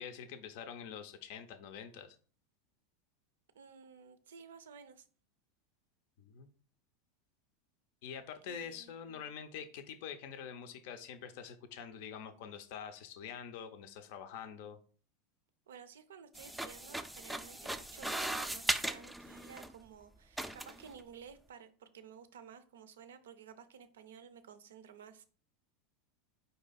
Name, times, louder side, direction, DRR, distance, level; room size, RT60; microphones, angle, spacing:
voice 1, 0.0-2.2 6.2-6.5 8.0-14.8, left 8 dB, 60° left, 0.5 m, -46 dB
voice 2, 3.5-5.1 8.5-9.2 15.7-25.2, right 7 dB, 70° right, 0.5 m, -54 dB
sound 1, 16.3-19.7 20.4-20.9, right 1 dB, 5° right, 0.4 m, -38 dB
4.8 x 2.6 x 3.9 m
figure-of-eight pair, 85°, 0 cm